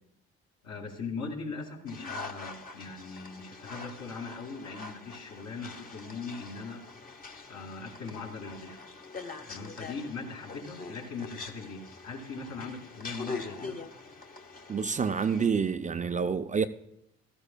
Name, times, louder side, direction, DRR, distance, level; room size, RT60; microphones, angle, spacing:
voice 1, 0.6-6.8 7.5-8.8 9.5-13.8, left 4 dB, 65° left, 2.3 m, -40 dB
sound 1, 1.9-15.5, left 3 dB, 30° left, 1.1 m, -43 dB
voice 2, 14.7-16.7, right 6 dB, 25° right, 0.4 m, -28 dB
14.0 x 13.0 x 2.2 m
supercardioid pair, 70°, 29 cm